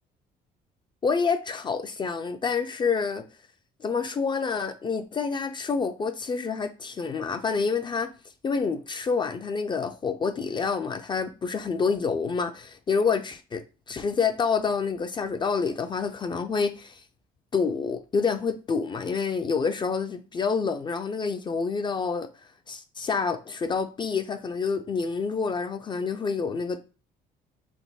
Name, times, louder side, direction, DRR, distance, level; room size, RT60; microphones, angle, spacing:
voice 1, 1.0-3.2 3.8-8.1 8.4-17.0 17.5-22.3 22.7-26.8, left 5 dB, 25° left, 0.4 m, -28 dB
3.5 x 2.2 x 3.9 m
cardioid pair, 110°, 17 cm